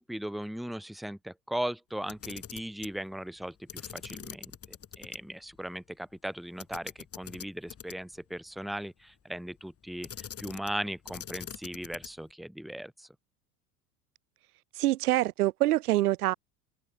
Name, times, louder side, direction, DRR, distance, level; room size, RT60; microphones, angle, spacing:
voice 1, 0.0-13.1, right 1 dB, ahead, 1.7 m, -38 dB
Camera, 2.0-3.0 3.7-5.2 5.5-5.6 6.6-8.2 10.0-10.8 11.1-12.3, left 8 dB, 30° left, 4.2 m, -43 dB
voice 2, 14.7-16.3, right 16 dB, 75° right, 1.9 m, -25 dB
open air
hypercardioid pair, 85°, 45 cm